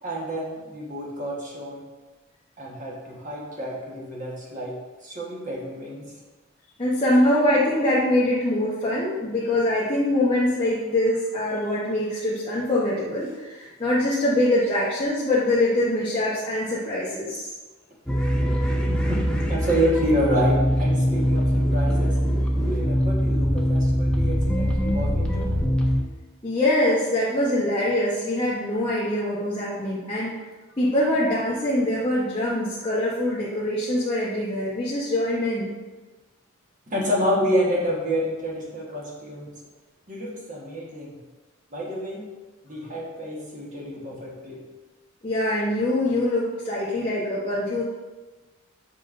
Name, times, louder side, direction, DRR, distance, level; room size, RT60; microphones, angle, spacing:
voice 1, 0.0-1.8 2.6-4.7 5.0-6.1 18.9-22.2 22.6-25.5 36.9-39.5 40.1-41.2 41.7-42.2 42.6-44.6, equal, 35° right, -3 dB, 1.3 m, -28 dB
voice 2, 6.8-17.5 26.4-30.3 30.8-35.7 45.2-47.8, left 1 dB, 25° left, -9 dB, 1.0 m, -23 dB
sound 1, 18.1-26.0, equal, 5° left, 0.6 m, -22 dB
7.4 x 5.2 x 2.6 m, 1.2 s
head